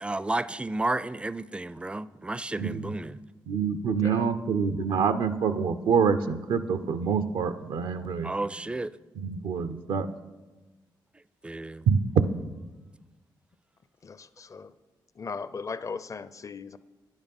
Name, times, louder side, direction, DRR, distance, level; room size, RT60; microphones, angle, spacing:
voice 1, 0.0-3.2 8.2-8.9 11.4-11.9, right 2 dB, 15° right, 17 dB, 0.4 m, -32 dB
voice 2, 3.5-8.3 9.2-10.1 11.9-12.0, right 6 dB, 85° right, 10 dB, 0.5 m, -26 dB
voice 3, 4.0-4.3 14.0-14.7 15.2-16.8, left 5 dB, 40° left, 14 dB, 0.5 m, -38 dB
10.5 x 9.0 x 5.4 m, 1.2 s
cardioid pair, 60°, 8 cm